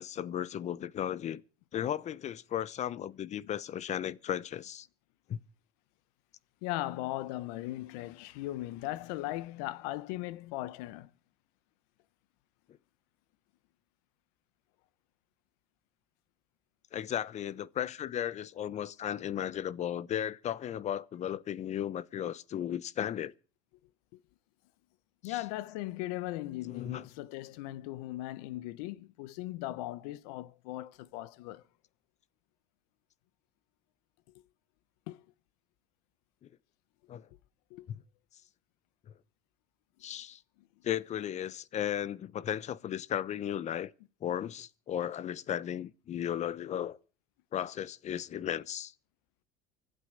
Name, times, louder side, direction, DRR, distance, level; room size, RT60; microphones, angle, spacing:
voice 1, 0.0-1.4 1.7-4.9 5.3-5.4 16.9-23.3 25.2-25.4 26.7-27.1 36.4-36.5 37.1-37.3 40.0-40.4 40.8-43.9 44.2-47.0 47.5-48.9, left 10 dB, 35° left, 0.9 m, -35 dB
voice 2, 6.6-11.1 25.2-31.6 35.1-35.2 37.7-37.9, left 16 dB, 85° left, 1.2 m, -38 dB
25.0 x 8.3 x 6.6 m
cardioid pair, 130°, 19 cm